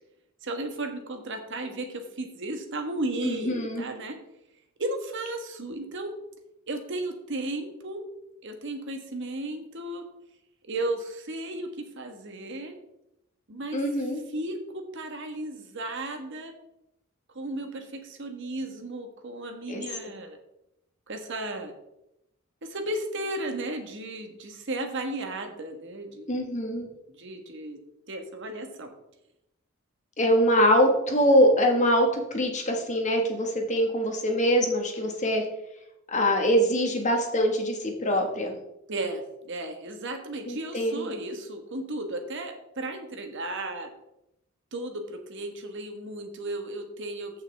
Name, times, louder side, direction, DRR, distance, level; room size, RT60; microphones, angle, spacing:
voice 1, 0.4-4.2 4.8-6.2 6.7-8.1 8.4-10.0 10.6-12.7 13.5-13.8 14.3-16.5 17.3-20.4 21.1-21.7 22.6-26.4 27.1-27.8 28.1-28.9 38.9-43.9 44.7-47.3, right 2 dB, 60° right, 5 dB, 1.4 m, -34 dB
voice 2, 3.2-3.8 13.7-14.2 19.7-19.8 26.3-26.8 30.2-35.4 36.1-38.6 40.4-41.1, equal, 35° left, 3 dB, 1.7 m, -23 dB
15.0 x 6.0 x 3.5 m, 0.85 s
head